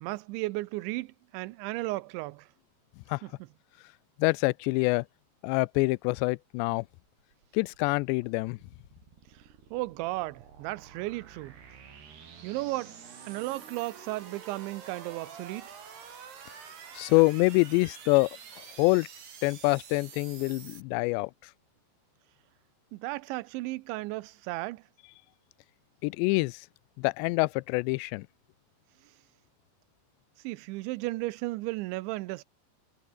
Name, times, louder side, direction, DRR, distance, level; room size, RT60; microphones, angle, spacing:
voice 1, 0.0-2.5 3.2-3.3 9.7-11.5 12.4-12.9 13.2-15.7 22.9-24.8 30.4-32.4, right 20 dB, 85° right, 3.1 m, -34 dB
voice 2, 4.2-5.0 5.4-6.8 7.5-8.6 17.0-18.3 18.8-19.1 19.4-21.3 26.0-26.6 27.0-28.3, left 25 dB, 85° left, 2.7 m, -25 dB
sound 1, 7.2-20.8, right 7 dB, 60° right, 6.1 m, -49 dB
Cheering / Applause, 12.3-18.8, right 6 dB, 45° right, 4.9 m, -56 dB
omnidirectional pair, 5.2 m